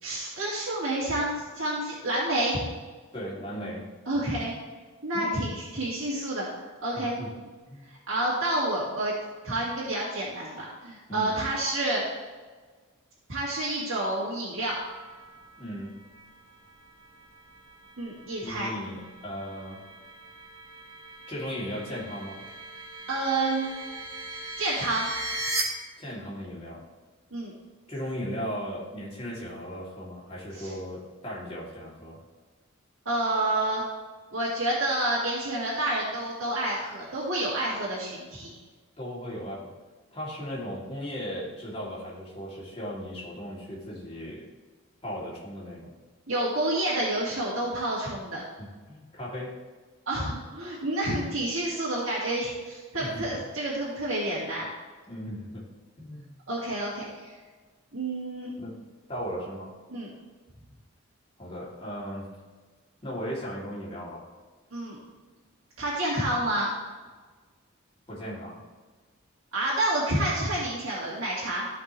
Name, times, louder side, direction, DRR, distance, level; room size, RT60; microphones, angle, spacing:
voice 1, 0.0-2.7 4.1-4.6 5.0-6.5 6.8-7.3 7.9-9.1 9.4-12.0 13.3-14.8 18.0-18.7 23.1-23.7 24.6-25.1 27.3-27.5 30.5-30.7 33.1-33.8 34.3-38.5 46.3-48.4 50.1-54.7 56.5-57.3 57.9-58.5 59.9-60.1 64.7-65.0 65.8-66.7 69.5-71.7, right 1 dB, 85° right, -7 dB, 2.1 m, -29 dB
voice 2, 3.1-3.9 5.1-5.5 6.9-7.3 7.7-7.9 11.1-11.4 15.6-16.0 18.4-19.8 21.3-22.5 26.0-26.8 27.9-32.2 39.0-39.7 40.1-44.4 45.0-45.9 48.6-49.6 53.0-53.2 55.1-55.7 56.0-56.3 58.6-58.8 59.1-59.7 61.4-62.3 63.0-64.3 68.1-68.6, equal, 25° left, -6 dB, 2.6 m, -37 dB
sound 1, 14.7-25.6, right 2 dB, 25° right, 1.8 m, -40 dB
14.0 x 5.2 x 3.1 m, 1.4 s
head